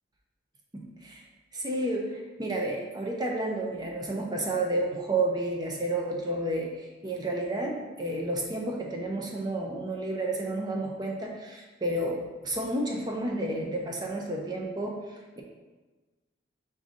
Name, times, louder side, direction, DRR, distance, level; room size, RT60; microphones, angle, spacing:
voice 1, 0.7-1.2 1.5-15.0, right 1 dB, 20° right, -1 dB, 0.5 m, -31 dB
5.0 x 2.6 x 3.6 m, 1.3 s
head